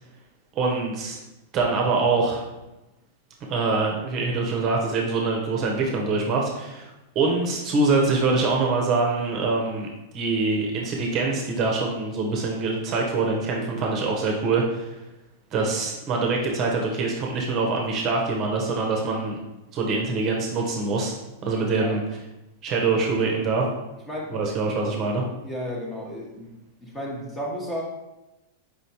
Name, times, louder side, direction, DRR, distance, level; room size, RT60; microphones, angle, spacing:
voice 1, 0.5-1.2 1.5-2.4 3.5-9.9 10.1-14.9 15.5-19.4 19.7-21.1 21.4-22.0 22.6-23.6 24.3-25.2, right 3 dB, 35° right, 0 dB, 0.8 m, -24 dB
voice 2, 25.4-26.5 26.8-27.8, equal, 10° left, -3 dB, 1.0 m, -33 dB
4.8 x 3.2 x 2.8 m, 0.97 s
supercardioid pair, 140°, 0 cm